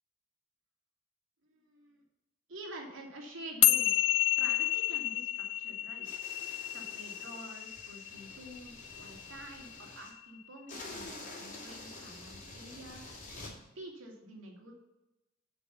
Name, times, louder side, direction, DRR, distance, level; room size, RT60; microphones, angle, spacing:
voice 1, 1.4-2.0 2.5-4.1 4.4-6.1 6.7-13.1 13.8-14.7, right 1 dB, 80° right, -1 dB, 2.4 m, -48 dB
sound 1, 3.6-10.2, left 15 dB, 70° left, 0.3 m, -31 dB
sound 2, 6.0-10.1 10.7-13.5, left 2 dB, 40° left, 2.6 m, -48 dB
8.3 x 5.4 x 6.9 m, 0.96 s
head